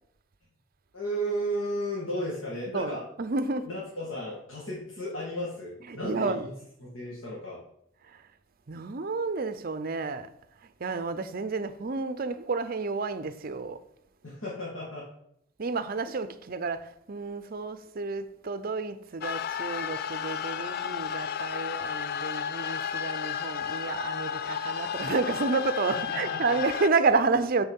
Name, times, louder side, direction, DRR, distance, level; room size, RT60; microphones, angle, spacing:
voice 1, 0.9-3.0 3.6-6.3 6.8-7.6 14.2-15.1 25.9-26.6, equal, 80° left, 2.0 m, -34 dB
voice 2, 2.7-3.7 5.9-6.5 8.0-8.2 8.7-10.3 10.6-13.8 15.6-27.7, right 4 dB, 45° right, 0.6 m, -30 dB
sound 1, 19.2-26.9, left 8 dB, 50° left, 0.3 m, -33 dB
7.9 x 4.4 x 5.5 m
head